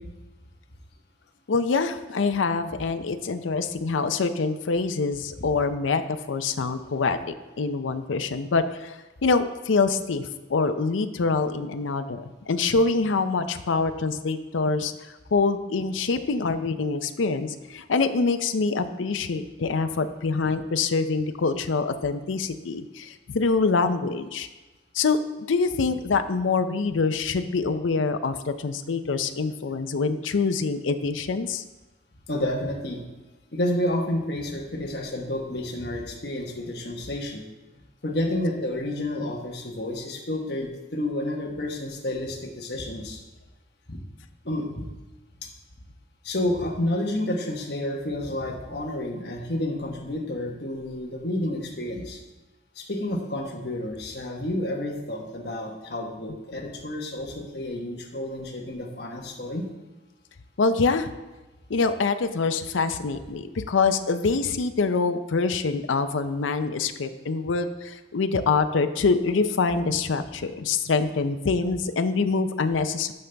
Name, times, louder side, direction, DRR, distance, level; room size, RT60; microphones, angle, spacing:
voice 1, 1.5-24.5 24.9-25.2 25.5-31.6 60.6-61.1 61.7-73.1, left 4 dB, 90° left, 9 dB, 0.5 m, -25 dB
voice 2, 32.3-33.0 33.5-37.4 38.0-43.2 43.9-44.0 44.4-44.8 45.4-45.5 46.2-52.2 52.7-59.6, left 1 dB, 60° left, 0 dB, 1.2 m, -30 dB
12.0 x 5.3 x 3.4 m, 1.1 s
head